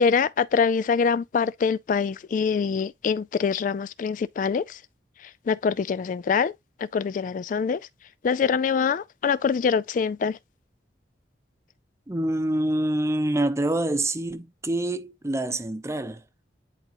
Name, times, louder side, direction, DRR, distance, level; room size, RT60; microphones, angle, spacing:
voice 1, 0.0-4.8 5.2-6.5 6.8-7.8 8.2-10.4, left 6 dB, 45° left, 0.3 m, -24 dB
voice 2, 12.1-16.2, right 1 dB, 15° right, 0.7 m, -26 dB
10.5 x 3.6 x 2.9 m
head